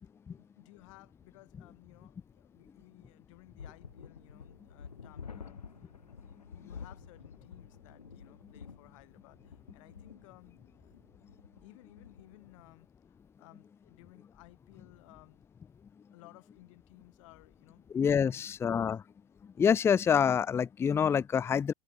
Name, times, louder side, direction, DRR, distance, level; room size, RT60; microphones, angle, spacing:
voice 1, 0.4-5.7 6.3-11.0 11.6-15.4 16.1-17.9 18.3-18.5 18.8-18.9, left 20 dB, 50° left, 4.4 m, -58 dB
sound 1, 3.6-12.6, left 6 dB, 75° left, 3.1 m, -50 dB
voice 2, 17.9-19.0 19.4-21.7, left 7 dB, 10° left, 0.5 m, -27 dB
figure-of-eight pair, 95°, 20 cm